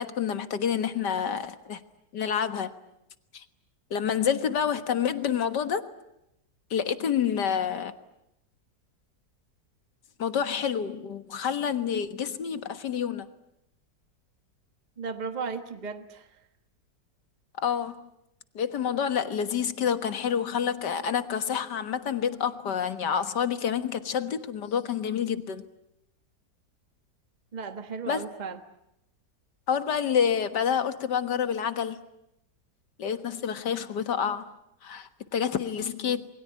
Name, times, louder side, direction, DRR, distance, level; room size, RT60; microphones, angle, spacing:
voice 1, 0.0-1.8 2.1-2.7 3.3-3.5 3.9-5.8 6.7-7.9 10.2-13.3 17.6-18.1 18.6-25.6 28.1-28.2 29.7-32.0 33.0-34.5 34.8-36.3, left 8 dB, 80° left, 10 dB, 2.1 m, -28 dB
voice 2, 15.0-16.3 27.5-28.6, right 5 dB, 25° right, 8 dB, 1.4 m, -35 dB
27.5 x 22.5 x 9.6 m, 0.84 s
omnidirectional pair, 1.8 m